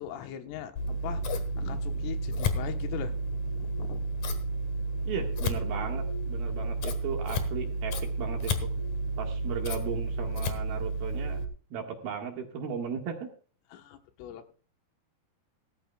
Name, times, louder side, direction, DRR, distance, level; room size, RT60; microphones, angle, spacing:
voice 1, 0.0-4.1 13.7-14.5, left 10 dB, 90° left, 6 dB, 3.9 m, -41 dB
Scissors, 0.8-11.4, right 1 dB, 75° left, 1.7 m, -31 dB
voice 2, 5.0-8.7 9.2-11.4 11.7-13.3, right 6 dB, 60° right, 2 dB, 3.1 m, -36 dB
17.5 x 14.5 x 2.3 m, 0.40 s
omnidirectional pair, 5.6 m